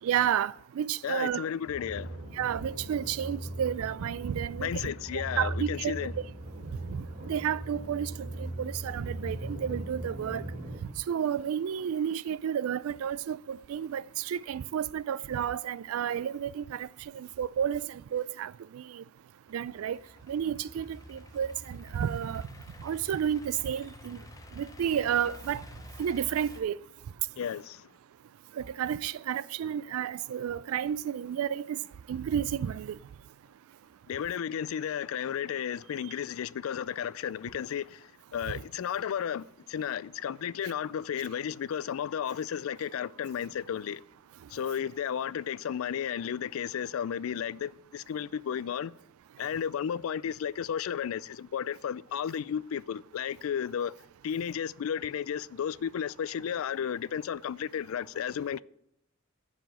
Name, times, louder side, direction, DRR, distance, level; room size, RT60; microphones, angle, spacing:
voice 1, 0.0-1.4 2.4-5.9 6.9-10.4 11.1-16.9 17.1-19.0 19.5-20.0 20.3-22.4 22.8-24.2 24.6-25.6 26.0-26.8 28.6-31.8 32.1-33.0, right 9 dB, 80° right, 0.3 m, -31 dB
voice 2, 1.0-2.2 4.6-6.1 27.4-27.9 34.1-44.0 44.5-48.9 49.4-53.9 54.2-58.6, left 8 dB, 75° left, 0.3 m, -33 dB
sound 1, 1.7-10.8, right 1 dB, 40° right, 3.1 m, -39 dB
Idling / Accelerating revving vroom, 19.5-26.6, left 1 dB, 15° left, 0.7 m, -49 dB
10.5 x 4.9 x 7.7 m
head